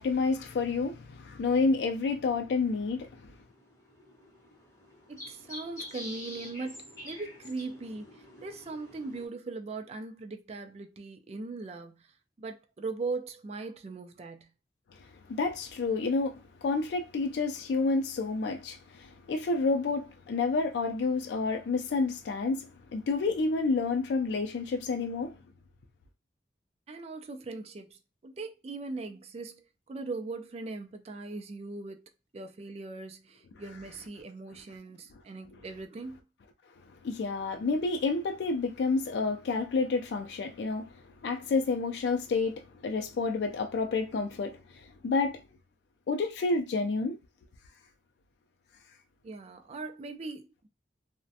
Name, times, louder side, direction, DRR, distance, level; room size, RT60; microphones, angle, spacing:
voice 1, 0.0-3.1 15.3-25.3 37.0-40.8 41.2-44.6 45.0-45.4 46.1-47.2, left 3 dB, 65° left, 0.3 m, -29 dB
sound 1, 2.6-9.3, left 1 dB, 15° left, 0.9 m, -47 dB
voice 2, 5.1-12.1 12.4-14.5 26.9-36.2 49.2-50.7, right 3 dB, 35° right, 0.3 m, -40 dB
2.4 x 2.1 x 2.6 m
head